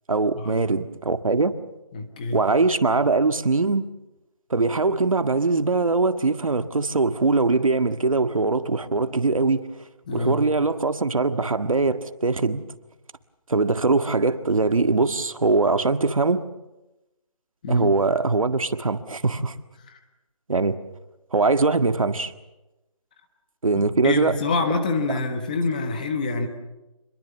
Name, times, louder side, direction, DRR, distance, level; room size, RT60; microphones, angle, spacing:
voice 1, 0.1-1.5 2.3-3.8 4.5-9.7 10.1-12.6 13.5-16.4 17.7-19.6 20.5-20.8 21.3-22.3 23.6-24.4 25.1-25.2, right 3 dB, 70° right, 9 dB, 1.8 m, -22 dB
voice 2, 1.9-2.4 10.1-10.5 17.6-17.9 19.9-20.0 23.8-26.5, left 3 dB, 15° left, 6 dB, 1.2 m, -26 dB
27.5 x 22.0 x 7.1 m, 1.0 s
figure-of-eight pair, 175°, 18 cm